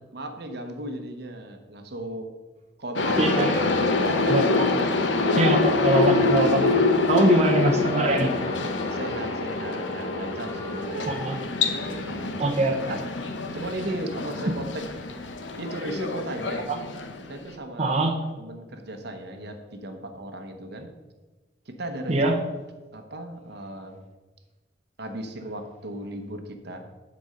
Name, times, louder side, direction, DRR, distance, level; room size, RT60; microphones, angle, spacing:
voice 1, 0.0-2.3 2.8-3.5 4.1-4.4 6.5-6.9 7.2-7.3 8.9-11.1 11.6-12.6 12.9-13.0 13.5-14.9 15.6-16.6 17.3-17.9 18.4-20.9 21.7-22.2 22.9-24.0 25.0-26.9, right 1 dB, 65° right, 5 dB, 1.0 m, -36 dB
sound 1, 3.0-17.5, left 3 dB, 90° left, 0.8 m, -26 dB
sound 2, 3.0-10.8, left 2 dB, 35° left, 1.5 m, -37 dB
voice 2, 3.2-3.5 4.3-4.4 5.4-6.6 7.1-8.3 11.1-11.4 12.4-12.9 16.7-16.8 17.8-18.1 22.1-22.4, right 2 dB, 40° right, 2 dB, 0.9 m, -22 dB
8.7 x 4.3 x 6.5 m, 1.2 s
head